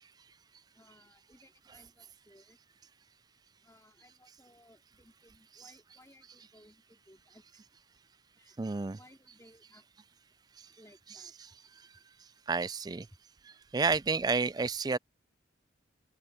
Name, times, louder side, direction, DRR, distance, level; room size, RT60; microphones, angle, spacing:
voice 1, 0.7-2.6 3.6-7.6 8.4-8.6 9.0-9.8 10.8-11.6 13.1-13.2, left 1 dB, 15° left, 4.2 m, -61 dB
voice 2, 8.6-9.0 12.5-13.1 13.7-15.0, right 4 dB, 20° right, 0.3 m, -30 dB
head